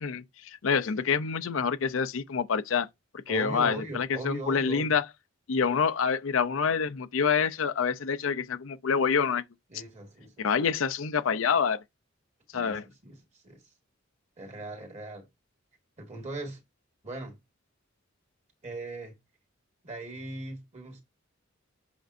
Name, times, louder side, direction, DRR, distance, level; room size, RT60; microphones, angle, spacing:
voice 1, 0.0-2.9 3.3-5.1 5.5-9.4 10.4-11.8 12.5-12.8, left 6 dB, 70° left, 0.5 m, -27 dB
voice 2, 3.3-5.0 9.7-10.5 12.5-13.6 14.4-15.3 16.0-16.6 17.0-17.4 18.6-19.1 19.8-21.0, right 2 dB, 35° right, 2.0 m, -40 dB
7.7 x 5.2 x 2.6 m
head